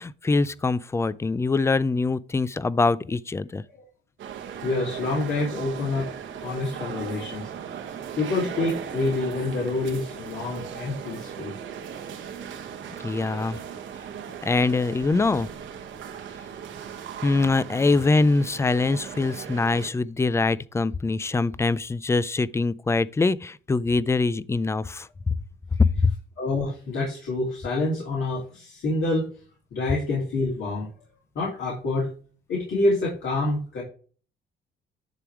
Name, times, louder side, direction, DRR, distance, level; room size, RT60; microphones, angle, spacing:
voice 1, 0.0-3.6 13.0-13.6 14.4-15.5 17.2-25.3 25.8-26.1, left 3 dB, 15° left, 0.3 m, -23 dB
sound 1, 4.2-19.9, right 8 dB, 70° right, 1.1 m, -38 dB
voice 2, 4.6-6.0 6.4-7.5 8.1-11.5 26.4-29.3 29.7-30.9 31.3-32.1 32.5-33.8, left 2 dB, 70° left, 2.7 m, -27 dB
10.0 x 3.5 x 4.6 m
cardioid pair, 90°, 20 cm